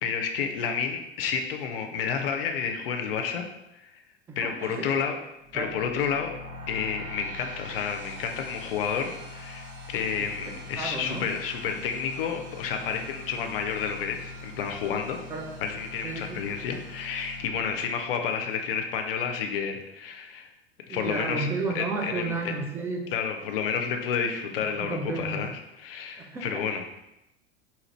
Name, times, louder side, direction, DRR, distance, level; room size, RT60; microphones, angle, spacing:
voice 1, 0.0-3.4 3.8-3.9 4.4-5.2 5.5-6.3 6.7-15.2 15.6-20.5 20.9-21.5 21.7-22.5 23.1-26.8, left 6 dB, 60° left, 5 dB, 0.5 m, -30 dB
voice 2, 4.3-4.9 5.5-5.8 10.4-11.3 15.3-15.5 16.0-16.4 20.9-23.1 24.8-25.5 26.2-26.6, right 3 dB, 10° right, 1 dB, 0.3 m, -33 dB
sound 1, 5.4-18.5, left 2 dB, 35° right, 1.2 m, -43 dB
2.9 x 2.4 x 3.1 m, 0.90 s
figure-of-eight pair, 80°, 31 cm